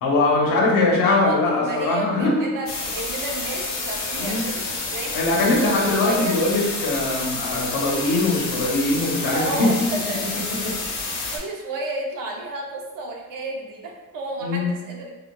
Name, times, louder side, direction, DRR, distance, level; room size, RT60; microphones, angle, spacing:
voice 1, 0.0-2.5 4.2-4.4 5.1-9.9 10.6-10.7 14.4-14.7, left 2 dB, 80° left, -2 dB, 1.0 m, -21 dB
voice 2, 0.9-6.4 9.3-10.7 11.3-15.1, right 2 dB, 75° right, 0 dB, 0.8 m, -32 dB
sound 1, 2.7-11.4, left 3 dB, 55° left, 0.8 m, -29 dB
4.8 x 2.4 x 2.3 m, 1.1 s
cardioid pair, 170°, 33 cm